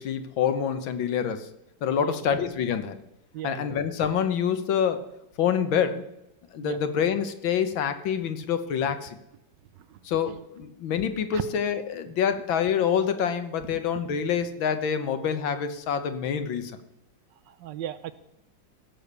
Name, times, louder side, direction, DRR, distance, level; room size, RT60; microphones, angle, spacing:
voice 1, 0.0-1.5 1.8-3.0 3.4-5.0 5.4-6.1 6.5-9.2 10.1-16.7, left 8 dB, 75° left, 10 dB, 1.8 m, -26 dB
voice 2, 2.0-2.4 3.3-3.8 6.6-6.8 9.9-10.0 11.3-11.4 17.5-18.1, right 12 dB, 70° right, 14 dB, 1.2 m, -36 dB
16.0 x 7.0 x 6.8 m, 0.85 s
omnidirectional pair, 2.2 m